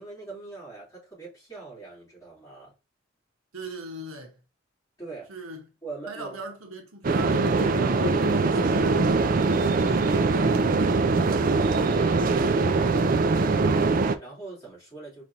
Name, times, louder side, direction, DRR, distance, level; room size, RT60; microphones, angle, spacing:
voice 1, 0.0-2.7 5.0-5.4 5.8-6.4 7.4-15.2, right 3 dB, 15° left, 2.9 m, -41 dB
voice 2, 3.5-4.4 5.3-5.7 6.1-7.9, right 2 dB, 90° right, 1.2 m, -39 dB
sound 1, 7.0-14.2, right 3 dB, 40° right, 0.4 m, -22 dB
5.0 x 3.2 x 2.8 m
head